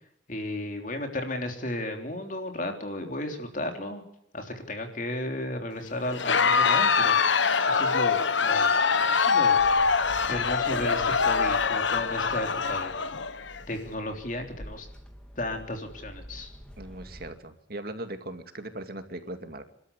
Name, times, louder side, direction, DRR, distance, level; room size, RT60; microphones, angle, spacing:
voice 1, 0.3-4.0 4.3-8.7 9.1-10.0 10.3-12.9 13.7-14.9 15.4-16.5, left 1 dB, 45° left, 4 dB, 3.4 m, -34 dB
Crowd, 6.1-13.6, left 5 dB, 75° left, 1.1 m, -24 dB
sound 1, 9.6-17.3, equal, 5° left, 2.7 m, -47 dB
voice 2, 16.8-19.6, right 1 dB, 50° right, 7 dB, 2.4 m, -39 dB
29.0 x 13.0 x 8.3 m, 0.75 s
head